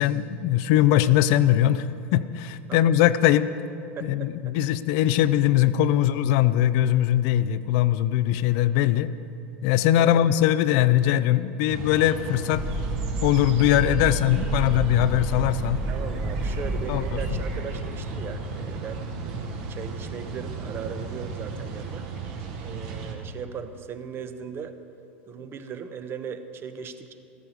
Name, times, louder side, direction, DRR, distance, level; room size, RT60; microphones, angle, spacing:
voice 1, 0.0-1.9 2.1-3.5 4.0-9.1 9.6-12.6 13.2-15.8 16.9-17.0, left 12 dB, 55° left, 15 dB, 0.5 m, -21 dB
voice 2, 4.0-4.5 10.0-10.2 15.9-22.1 22.6-24.7 25.3-27.1, right 7 dB, 35° right, 9 dB, 1.0 m, -38 dB
sound 1, 11.7-23.1, right 3 dB, 60° right, 2.1 m, -34 dB
sound 2, 12.6-17.6, right 1 dB, 10° right, 1.7 m, -31 dB
14.0 x 13.5 x 5.0 m, 2.7 s
hypercardioid pair, 90°, 7 cm